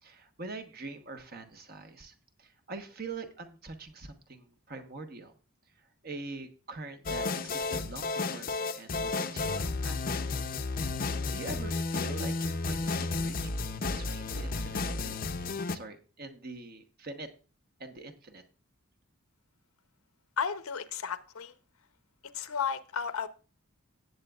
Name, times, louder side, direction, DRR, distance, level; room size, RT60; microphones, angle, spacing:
voice 1, 0.0-5.3 5.8-10.3 11.3-15.2 15.7-17.3 17.8-18.4, right 3 dB, 45° right, 1.1 m, -44 dB
sound 1, 7.1-15.8, left 3 dB, 40° left, 0.6 m, -32 dB
voice 2, 20.4-21.5 22.3-23.3, left 6 dB, 90° left, 0.8 m, -33 dB
18.0 x 7.9 x 2.4 m
head